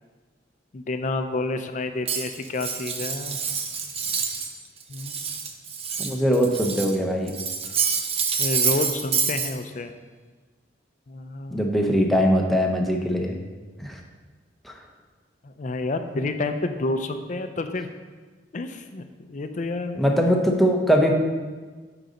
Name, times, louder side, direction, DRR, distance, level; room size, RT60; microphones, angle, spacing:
voice 1, 0.7-3.4 4.9-5.2 8.4-9.9 11.1-11.7 15.4-17.9 18.5-19.0 19.3-20.0, left 2 dB, 40° left, 8 dB, 0.5 m, -29 dB
Cutlery silverware, 2.1-4.5 4.8-7.0 7.3-9.5, right 6 dB, 35° right, 0.6 m, -27 dB
voice 2, 6.0-7.4 11.5-13.3 13.8-14.0 14.6-14.7 19.9-21.1, equal, ahead, 1 dB, 0.8 m, -21 dB
8.9 x 4.0 x 5.2 m, 1.4 s
head